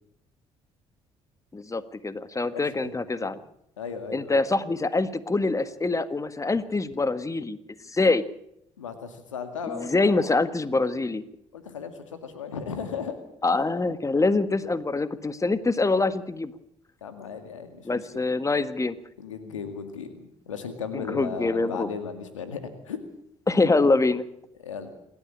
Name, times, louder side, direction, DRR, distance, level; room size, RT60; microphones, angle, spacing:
voice 1, 1.5-3.4 4.1-7.6 7.8-8.2 9.7-11.2 13.4-16.5 17.9-19.0 20.9-21.9 23.5-24.3, left 3 dB, 20° left, 13 dB, 1.6 m, -25 dB
voice 2, 2.5-3.4 3.8-4.4 8.8-10.3 11.5-13.2 13.5-13.6 17.0-17.9 19.2-23.0 24.6-24.9, left 6 dB, 85° left, 8 dB, 2.2 m, -36 dB
27.5 x 12.5 x 8.7 m, 0.75 s
figure-of-eight pair, 50°, 16 cm